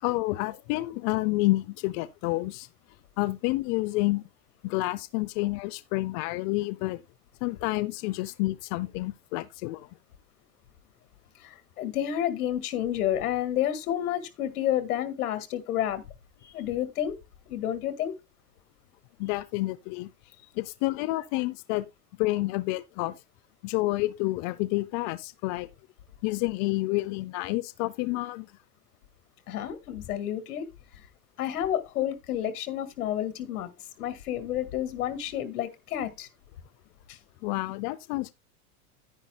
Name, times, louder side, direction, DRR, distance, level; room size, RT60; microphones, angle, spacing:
voice 1, 0.0-2.7 3.2-4.2 4.6-7.0 7.4-9.9 19.2-20.1 20.6-21.9 22.2-23.2 23.6-25.7 26.2-28.5 37.4-38.3, left 20 dB, 40° left, 0.6 m, -29 dB
voice 2, 11.4-16.0 16.4-17.1 17.5-18.1 29.5-30.7 31.4-33.7 34.0-36.3 37.1-37.2, left 11 dB, 90° left, 1.9 m, -30 dB
10.5 x 10.0 x 2.2 m
supercardioid pair, 140°, 44 cm